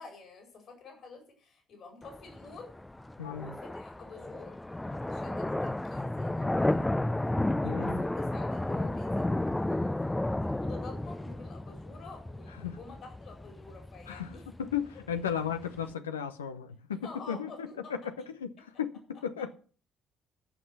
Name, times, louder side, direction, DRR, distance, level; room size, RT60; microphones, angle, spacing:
voice 1, 0.0-2.7 3.3-4.6 4.9-7.1 7.6-14.5 17.0-17.9, left 4 dB, 55° left, 4.9 m, -49 dB
sound 1, 2.0-15.9, left 1 dB, 10° left, 0.5 m, -33 dB
voice 2, 3.2-3.6 7.6-8.0 12.6-12.8 14.1-14.3 14.6-19.5, left 8 dB, 90° left, 0.8 m, -35 dB
14.5 x 5.8 x 8.0 m
hypercardioid pair, 50°, 0 cm